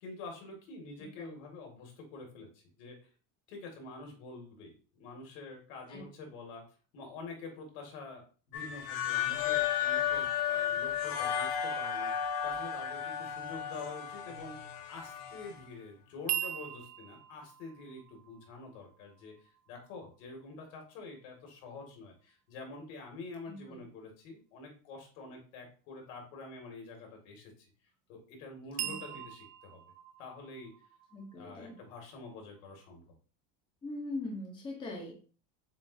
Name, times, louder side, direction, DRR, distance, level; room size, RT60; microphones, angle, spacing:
voice 1, 0.0-3.1 3.5-6.6 6.9-8.2 8.5-14.6 14.9-27.5 28.1-29.8 30.2-30.7 31.3-33.0, left 3 dB, 90° left, 2 dB, 2.1 m, -47 dB
voice 2, 1.0-1.3 5.9-6.0 23.5-23.8 28.8-29.2 31.1-31.8 33.8-35.1, left 2 dB, 10° left, 0 dB, 0.7 m, -42 dB
sound 1, 8.5-15.6, left 9 dB, 65° left, 0.9 m, -33 dB
sound 2, 16.3-20.3 28.8-32.6, right 13 dB, 45° right, 0.5 m, -42 dB
7.1 x 2.5 x 2.6 m, 0.38 s
cardioid pair, 175°, 39 cm